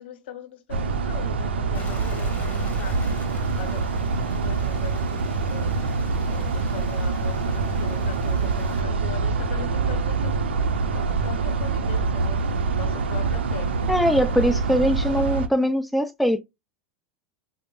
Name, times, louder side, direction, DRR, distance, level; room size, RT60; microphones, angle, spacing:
voice 1, 0.0-3.0 3.6-5.7 6.3-10.4 10.9-12.4 12.8-14.1 14.5-14.8, left 9 dB, 75° left, 0.7 m, -40 dB
sound 1, 0.7-15.5, right 4 dB, 85° right, 0.5 m, -25 dB
Stream, 1.7-8.8, left 4 dB, 25° left, 1.1 m, -46 dB
voice 2, 13.9-16.4, equal, ahead, 0.5 m, -21 dB
5.0 x 2.0 x 2.3 m
hypercardioid pair, 95°, 6 cm